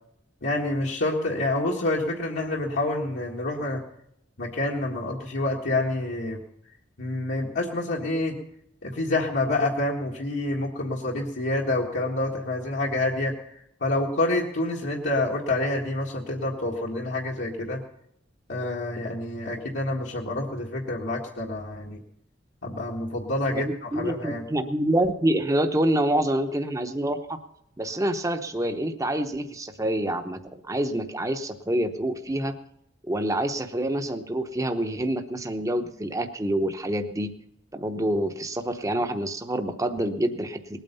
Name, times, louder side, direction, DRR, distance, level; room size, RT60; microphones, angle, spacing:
voice 1, 0.4-3.8 4.4-6.4 7.0-8.3 8.8-13.3 13.8-17.8 18.5-22.0 22.6-24.4, left 2 dB, 75° left, -3 dB, 1.8 m, -27 dB
voice 2, 23.9-27.4 27.8-30.4 30.7-32.5 33.0-37.3 37.7-40.8, right 1 dB, 20° right, 6 dB, 0.8 m, -27 dB
19.5 x 9.1 x 5.4 m, 0.73 s
head